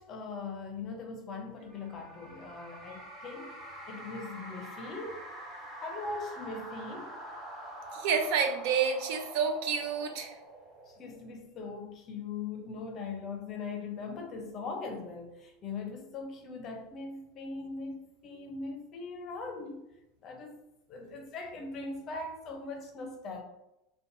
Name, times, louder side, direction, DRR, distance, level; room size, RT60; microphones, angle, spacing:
voice 1, 0.0-3.6 3.9-5.2 5.8-7.2 10.9-19.8 20.2-20.6 20.9-23.4, left 3 dB, 35° left, 3 dB, 0.5 m, -40 dB
sound 1, 1.6-11.3, right 1 dB, 15° right, 0.9 m, -46 dB
voice 2, 7.9-10.3, right 6 dB, 65° right, 4 dB, 0.4 m, -29 dB
2.9 x 2.2 x 2.5 m, 0.88 s
supercardioid pair, 135°, 0 cm